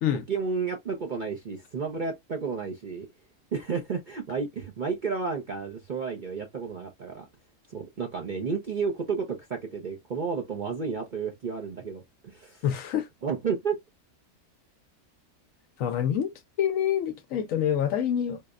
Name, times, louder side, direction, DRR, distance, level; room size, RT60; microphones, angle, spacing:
voice 1, 0.3-3.1 3.5-7.3 7.7-12.6 13.2-13.8, right 5 dB, 50° right, 0.6 m, -32 dB
voice 2, 12.6-13.1 15.8-16.3 16.6-18.4, left 9 dB, 70° left, 0.9 m, -26 dB
4.6 x 2.1 x 2.3 m
omnidirectional pair, 1.6 m